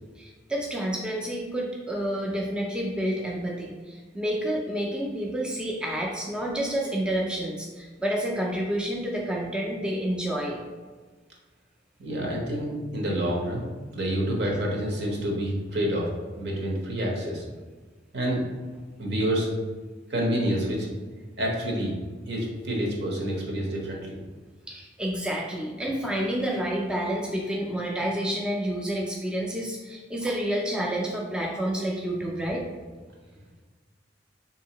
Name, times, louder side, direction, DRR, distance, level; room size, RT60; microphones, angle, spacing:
voice 1, 0.2-10.6 14.4-14.5 24.7-32.7, right 1 dB, 5° right, -2 dB, 0.3 m, -29 dB
voice 2, 12.0-13.7 13.9-16.1 16.4-17.4 18.1-18.4 19.0-19.5 20.1-20.9 21.4-21.9 22.3-24.2, equal, 65° right, -2 dB, 0.8 m, -28 dB
3.5 x 2.7 x 2.8 m, 1.4 s
head